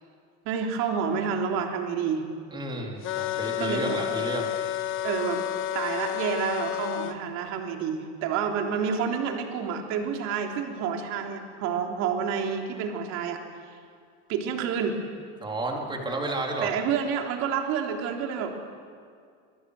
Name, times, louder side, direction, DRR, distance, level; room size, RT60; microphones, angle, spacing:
voice 1, 0.5-2.3 3.6-4.0 5.0-5.4 5.7-13.4 14.3-15.0 16.6-18.7, right 7 dB, 50° right, 2 dB, 3.5 m, -29 dB
voice 2, 2.5-4.5 15.4-16.7, right 2 dB, 15° right, 0 dB, 3.9 m, -31 dB
sound 1, 3.0-7.2, left 12 dB, 35° left, 1.4 m, -30 dB
27.0 x 22.0 x 8.3 m, 2.2 s
supercardioid pair, 150°, 34 cm